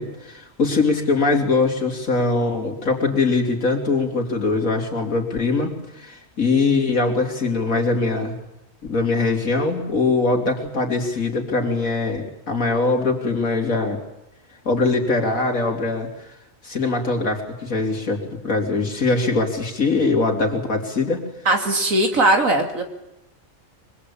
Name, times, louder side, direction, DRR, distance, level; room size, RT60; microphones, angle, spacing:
voice 1, 0.0-8.4 8.8-14.0 14.7-16.3 16.6-21.2, left 3 dB, 90° left, 2 dB, 3.5 m, -22 dB
voice 2, 21.5-22.8, right 1 dB, 80° right, 5 dB, 3.0 m, -19 dB
24.5 x 20.0 x 8.5 m, 0.90 s
omnidirectional pair, 1.4 m